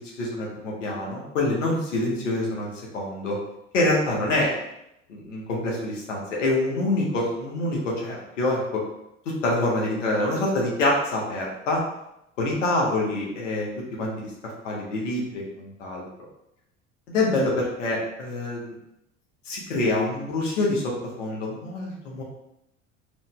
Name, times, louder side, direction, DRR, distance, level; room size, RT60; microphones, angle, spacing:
voice 1, 0.0-3.4 3.7-4.5 5.1-8.8 9.4-11.8 12.4-14.3 14.6-16.0 17.1-18.8 19.5-22.2, left 2 dB, 85° left, -3 dB, 1.0 m, -26 dB
2.9 x 2.6 x 3.6 m, 0.82 s
hypercardioid pair, 70°, 36 cm